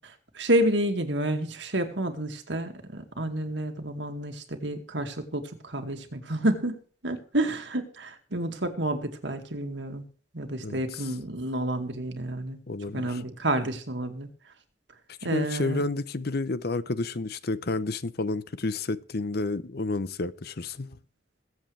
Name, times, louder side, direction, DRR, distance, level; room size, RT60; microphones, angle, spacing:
voice 1, 0.0-10.1 10.3-12.6 12.9-14.3 15.2-15.8, right 1 dB, 80° right, 2.2 m, -29 dB
voice 2, 12.7-13.2 15.2-21.0, left 3 dB, 60° left, 0.8 m, -30 dB
22.0 x 7.9 x 3.4 m
head